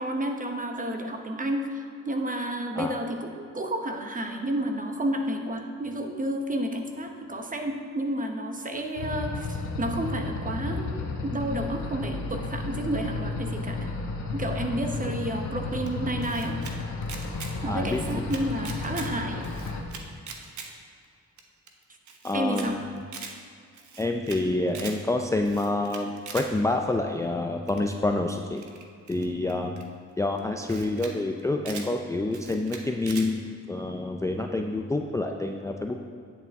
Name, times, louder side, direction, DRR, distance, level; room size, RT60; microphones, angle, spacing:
voice 1, 0.0-13.9 14.3-16.6 17.6-19.5 22.3-22.8, right 1 dB, 30° right, 4 dB, 1.0 m, -31 dB
sound 1, 9.0-19.8, left 3 dB, 75° left, 1.2 m, -33 dB
Camera, 15.9-16.7 17.0-17.5 17.8-19.1 19.4-20.7 21.0-21.1 21.4-21.5 21.7-21.8 22.1-22.7 23.0-23.3 23.7-24.4 24.7-25.0 25.4-26.5 27.7-27.9 28.6-29.8 30.4-30.5 30.6-31.1 31.4-31.9 32.3-33.3, right 5 dB, 75° right, 1.0 m, -41 dB
voice 2, 17.7-18.2 22.2-23.0 24.0-28.6 29.1-29.8 30.2-36.1, left 2 dB, 10° left, 3 dB, 0.4 m, -28 dB
9.3 x 8.4 x 3.5 m, 2.3 s
cardioid pair, 95°, 29 cm